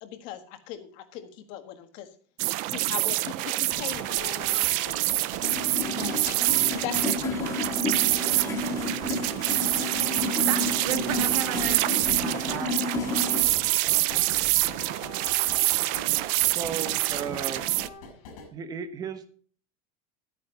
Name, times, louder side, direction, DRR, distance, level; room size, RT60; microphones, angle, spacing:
voice 1, 0.0-2.1 2.7-5.1 5.9-6.2 6.7-7.4, left 11 dB, 50° left, 8 dB, 1.7 m, -39 dB
sound 1, 2.4-17.9, right 19 dB, 45° right, 0.5 m, -26 dB
sound 2, 3.7-18.5, left 4 dB, 80° left, 5.1 m, -42 dB
sound 3, 5.4-13.4, left 2 dB, 20° left, 2.1 m, -31 dB
voice 2, 10.1-12.7, right 10 dB, 70° right, 6 dB, 2.2 m, -35 dB
voice 3, 16.5-17.6 18.5-19.3, right 7 dB, 20° right, 10 dB, 1.0 m, -34 dB
13.0 x 9.4 x 4.0 m, 0.43 s
cardioid pair, 180°, 18 cm